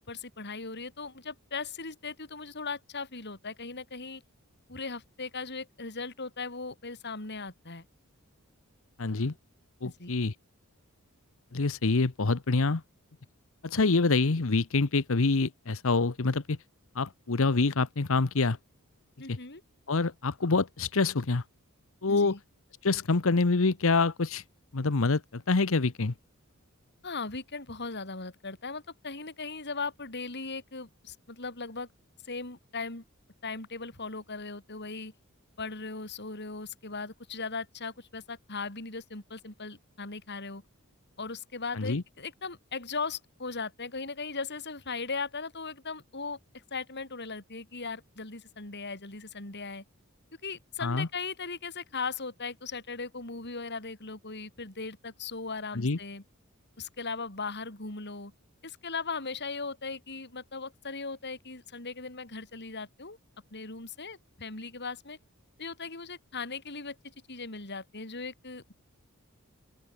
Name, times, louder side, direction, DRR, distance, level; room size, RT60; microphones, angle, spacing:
voice 1, 0.0-4.2 4.7-7.8 9.8-10.1 19.2-19.6 22.1-22.4 27.0-31.9 32.2-33.0 33.4-35.1 35.6-40.6 41.2-46.4 46.7-49.8 50.4-56.2 56.8-58.3 58.6-63.2 63.5-65.2 65.6-67.0 67.3-68.7, left 4 dB, 55° left, 5.3 m, -38 dB
voice 2, 9.0-9.3 9.8-10.3 11.5-12.8 13.6-16.6 16.9-18.6 19.3-19.4 19.9-21.4 22.0-22.4 22.8-24.4 24.7-26.1 41.7-42.0 50.8-51.1 55.7-56.0, left 3 dB, 70° left, 1.0 m, -26 dB
open air
head